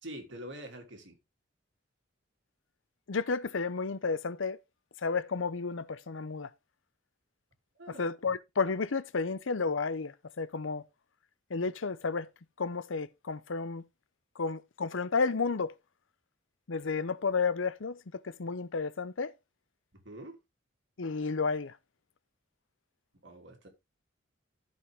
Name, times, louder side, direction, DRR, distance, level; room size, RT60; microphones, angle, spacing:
voice 1, 0.0-1.2 7.7-8.0 20.0-20.4 23.2-23.7, right 1 dB, 70° right, 3.1 m, -45 dB
voice 2, 3.1-4.6 5.0-6.5 7.9-10.8 11.5-12.3 12.6-13.8 14.4-15.7 16.7-19.3 21.0-21.7, left 4 dB, 80° left, 0.7 m, -32 dB
14.5 x 5.2 x 3.6 m
head